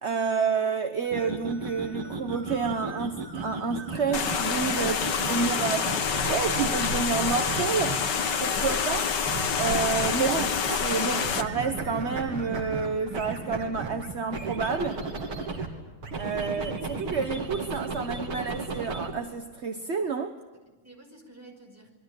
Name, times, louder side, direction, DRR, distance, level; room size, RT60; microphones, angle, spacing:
voice 1, 0.0-5.8 6.3-8.0 8.4-9.1 9.6-15.0 16.2-20.4, right 5 dB, 40° right, 1.1 m, -29 dB
sound 1, 1.0-8.2 9.3-10.9 11.2-15.7 16.0-19.1, right 3 dB, 75° right, 4.0 m, -35 dB
sound 2, 4.1-11.4, left 6 dB, 55° left, 1.9 m, -27 dB
voice 2, 16.4-16.9 20.5-21.9, right 1 dB, 5° right, 5.2 m, -51 dB
27.0 x 23.0 x 9.0 m
omnidirectional pair, 2.4 m